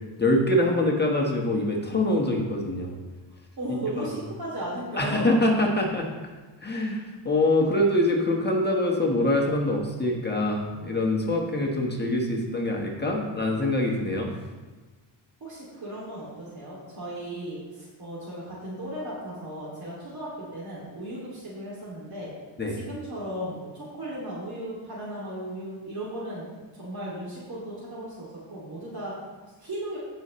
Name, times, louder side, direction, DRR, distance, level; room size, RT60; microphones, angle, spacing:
voice 1, 0.2-3.0 4.0-4.1 5.0-6.1 6.6-14.3 22.6-22.8, left 1 dB, 20° left, -1 dB, 1.4 m, -24 dB
voice 2, 3.6-5.3 15.4-22.3 22.7-26.5 26.8-29.1 29.6-30.0, right 1 dB, 50° right, -6 dB, 2.7 m, -36 dB
16.5 x 5.6 x 3.2 m, 1.3 s
wide cardioid pair, 130°, 47 cm